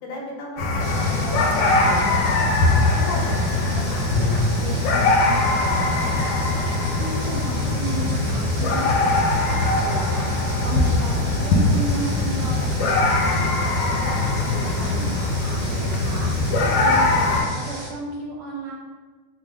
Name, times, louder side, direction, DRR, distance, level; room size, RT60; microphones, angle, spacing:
voice 1, 0.0-2.4 2.9-6.4 16.9-17.0, equal, 65° left, -2 dB, 0.9 m, -35 dB
sound 1, 0.6-17.4, left 2 dB, 85° left, 1.3 m, -21 dB
Water, 0.8-17.9, right 1 dB, 55° right, 1.1 m, -37 dB
Bowed string instrument, 4.1-8.9, left 1 dB, 15° left, 0.7 m, -31 dB
voice 2, 7.0-18.7, right 3 dB, 80° right, -3 dB, 1.2 m, -34 dB
3.3 x 2.1 x 3.4 m, 1.4 s
omnidirectional pair, 2.0 m